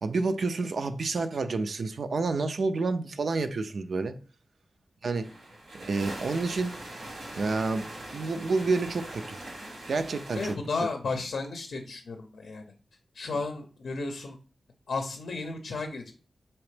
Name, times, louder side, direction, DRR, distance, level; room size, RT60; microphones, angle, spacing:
voice 1, 0.0-4.1 5.0-5.3 5.7-6.7 7.4-9.4 9.9-10.5, right 3 dB, 60° right, 0.3 m, -29 dB
sound 1, 5.2-10.5, right 1 dB, 80° right, 1.2 m, -42 dB
voice 2, 10.3-12.7 13.1-14.4 14.9-16.1, left 3 dB, 80° left, 0.6 m, -33 dB
4.1 x 2.8 x 3.3 m
wide cardioid pair, 160°, 0 cm